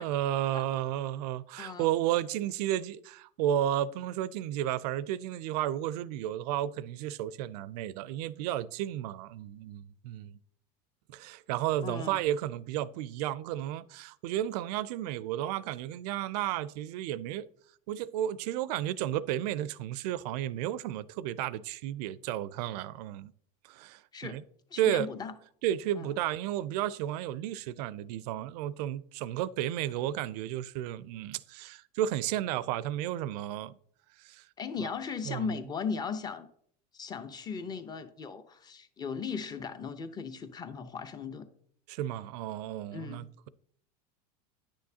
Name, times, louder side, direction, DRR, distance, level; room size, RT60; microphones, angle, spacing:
voice 1, 0.0-10.4 11.1-17.5 17.9-23.3 23.6-24.4 24.8-25.1 25.6-33.8 34.2-34.4 34.8-34.9 35.3-35.5 41.9-43.5, right 12 dB, 75° right, 0.4 m, -33 dB
voice 2, 1.6-1.9 11.8-12.2 24.1-24.4 24.7-25.3 26.0-26.2 34.6-36.5 36.9-41.5 42.9-43.3, left 5 dB, 20° left, 0.7 m, -37 dB
9.8 x 6.3 x 2.8 m
supercardioid pair, 125°, 21 cm